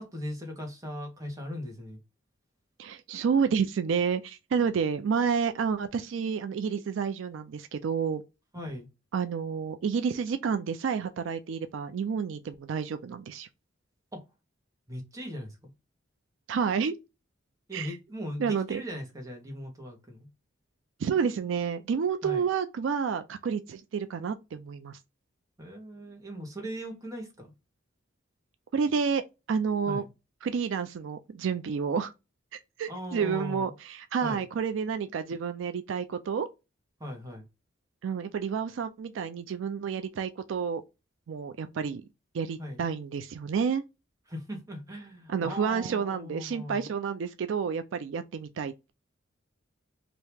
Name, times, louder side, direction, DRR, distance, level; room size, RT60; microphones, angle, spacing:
voice 1, 0.0-2.0 8.5-8.9 14.1-14.2 14.9-15.7 17.7-20.3 22.2-22.5 25.6-27.5 29.9-30.1 32.9-33.7 34.2-34.4 37.0-37.4 42.6-42.8 44.3-46.9, equal, 15° right, 1.1 m, -39 dB
voice 2, 2.8-8.2 9.1-13.5 16.5-16.9 17.7-18.0 18.4-18.8 21.0-25.0 28.7-29.2 29.5-30.0 30.4-32.1 32.5-36.5 38.0-40.8 41.3-42.0 42.3-43.8 45.3-48.9, right 6 dB, 70° right, 0.3 m, -30 dB
2.9 x 2.7 x 3.4 m
head